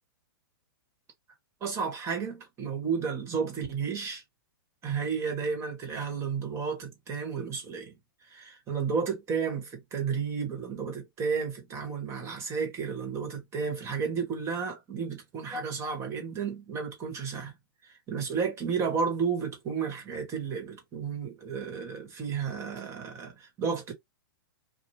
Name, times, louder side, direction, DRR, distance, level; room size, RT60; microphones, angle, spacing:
voice 1, 1.6-4.2 4.8-8.0 8.2-17.5 17.8-23.9, right 6 dB, 25° right, 1.4 m, -32 dB
3.0 x 2.4 x 2.7 m
hypercardioid pair, 140°, 12 cm